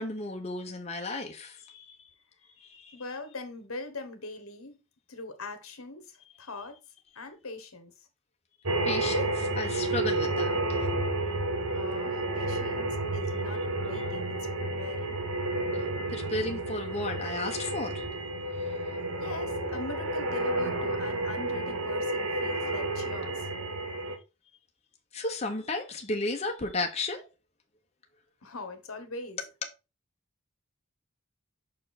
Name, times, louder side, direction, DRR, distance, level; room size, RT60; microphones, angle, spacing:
voice 1, 0.0-2.0 2.6-3.0 8.8-10.9 16.1-18.1 25.1-27.3, left 2 dB, 30° left, 1.0 m, -34 dB
voice 2, 2.9-4.8 5.1-6.8 7.1-7.9 11.7-15.1 19.2-23.5 28.4-29.4, left 2 dB, 85° left, 1.4 m, -41 dB
sound 1, 8.6-24.2, right 2 dB, 90° right, 1.4 m, -31 dB
6.5 x 4.6 x 4.1 m
head